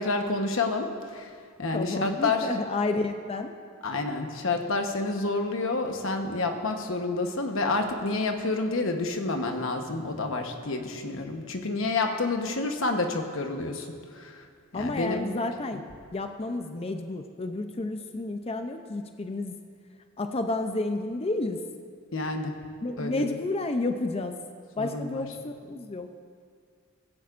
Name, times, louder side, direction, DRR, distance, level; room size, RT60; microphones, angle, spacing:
voice 1, 0.0-1.3 1.6-2.5 3.8-13.9 14.1-14.4 14.7-15.3 22.1-22.5 23.0-23.4 24.8-25.2, left 3 dB, 70° left, 4 dB, 1.1 m, -29 dB
voice 2, 1.7-3.5 14.7-15.8 16.1-19.6 20.2-21.6 22.8-24.4 24.8-26.2, left 2 dB, 30° left, 6 dB, 0.5 m, -31 dB
16.5 x 16.0 x 2.5 m, 2.1 s
head